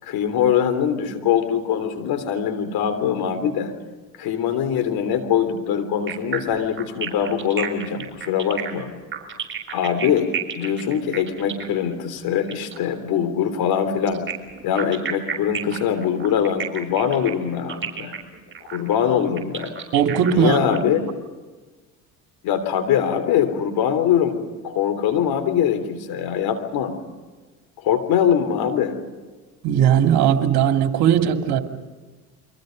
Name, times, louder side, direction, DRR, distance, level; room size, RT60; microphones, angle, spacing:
voice 1, 0.0-3.7 4.2-8.9 9.7-10.3 10.5-14.2 14.6-18.1 18.7-19.7 20.3-21.0 22.4-24.4 24.6-26.9 27.8-29.0, left 8 dB, 60° left, 9 dB, 3.5 m, -22 dB
sound 1, 6.1-12.8 14.1-20.8, right 7 dB, 30° right, 6.5 m, -32 dB
voice 2, 19.9-20.8 29.6-31.6, right 9 dB, 60° right, 5 dB, 2.7 m, -18 dB
29.5 x 24.0 x 5.3 m, 1.3 s
supercardioid pair, 80°, 41 cm